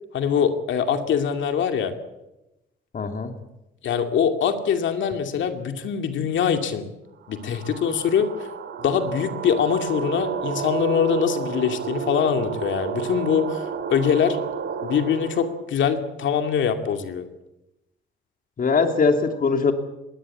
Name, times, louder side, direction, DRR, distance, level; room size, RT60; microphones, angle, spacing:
voice 1, 0.1-1.9 3.8-6.9 7.3-8.3 8.8-13.6 13.9-14.4 14.8-17.2, left 7 dB, 70° left, 6 dB, 2.5 m, -23 dB
voice 2, 2.9-3.3 18.6-19.7, left 4 dB, 45° left, 6 dB, 2.9 m, -21 dB
sound 1, 7.2-15.6, right 7 dB, 65° right, 2.5 m, -31 dB
20.0 x 17.5 x 8.4 m, 0.95 s
cardioid pair, 90°, 20 cm